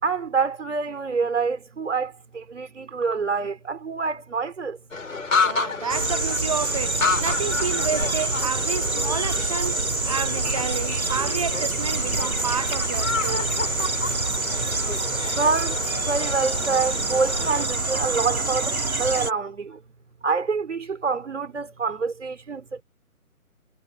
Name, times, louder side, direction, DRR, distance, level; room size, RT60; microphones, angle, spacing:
voice 1, 0.0-4.8 15.3-19.8 20.2-22.8, right 4 dB, 55° right, 4.0 m, -26 dB
sound 1, 4.9-17.7, left 4 dB, 65° left, 6.6 m, -30 dB
voice 2, 5.4-13.6, right 6 dB, 25° right, 0.9 m, -30 dB
sound 2, 5.9-19.3, right 3 dB, 70° right, 3.8 m, -26 dB
figure-of-eight pair, 145°, 43 cm